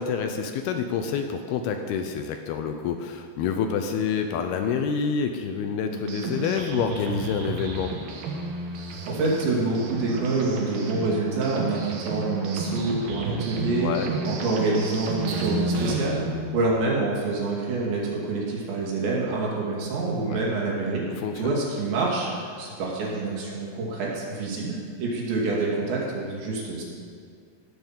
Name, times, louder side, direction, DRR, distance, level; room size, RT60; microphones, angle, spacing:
voice 1, 0.0-7.9 13.8-14.1 20.3-20.4 21.1-21.5, left 6 dB, 80° left, 6 dB, 2.4 m, -28 dB
sound 1, 5.9-16.3, right 2 dB, 70° right, 3.0 m, -32 dB
voice 2, 9.1-13.9 14.3-21.1 21.4-26.8, right 3 dB, 85° right, -4 dB, 4.8 m, -27 dB
17.0 x 6.0 x 7.2 m, 2.1 s
omnidirectional pair, 5.0 m